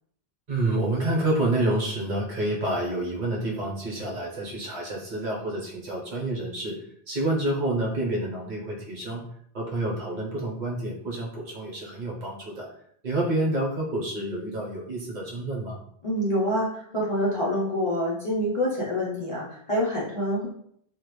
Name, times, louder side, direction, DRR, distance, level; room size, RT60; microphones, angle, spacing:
voice 1, 0.5-6.8 7.1-9.2 9.5-12.7 13.0-15.8, right 1 dB, 50° right, -3 dB, 0.7 m, -28 dB
voice 2, 16.0-20.5, equal, 45° left, -6 dB, 0.5 m, -26 dB
2.1 x 2.0 x 2.9 m, 0.67 s
omnidirectional pair, 1.1 m